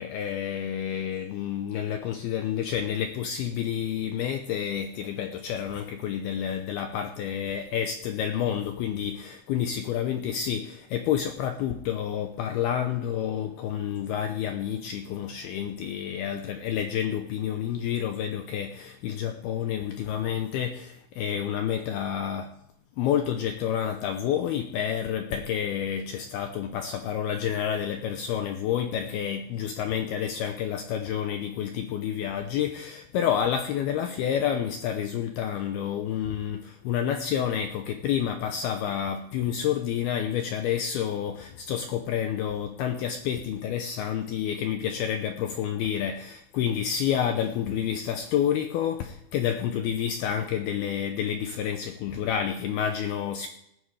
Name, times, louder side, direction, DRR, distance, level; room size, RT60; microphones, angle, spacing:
voice 1, 0.0-22.5 23.0-53.5, left 9 dB, 80° left, 6 dB, 2.2 m, -29 dB
19.0 x 12.5 x 3.3 m, 0.79 s
omnidirectional pair, 5.4 m